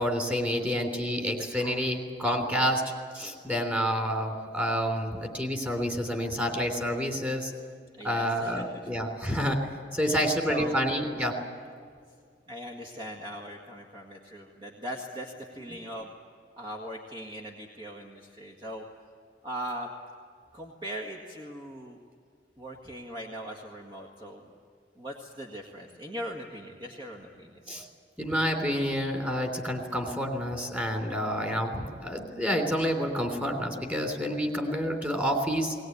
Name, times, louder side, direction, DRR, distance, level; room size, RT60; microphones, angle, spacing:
voice 1, 0.0-2.8 3.1-7.5 8.0-9.6 9.9-11.4 27.7-27.8 28.2-35.7, equal, 10° right, 3 dB, 3.3 m, -28 dB
voice 2, 8.0-8.6 10.0-10.7 12.5-16.1 16.5-18.8 19.4-19.9 20.5-22.0 22.6-24.4 25.0-27.8, right 1 dB, 25° right, -2 dB, 1.8 m, -40 dB
20.5 x 19.5 x 9.4 m, 2.1 s
head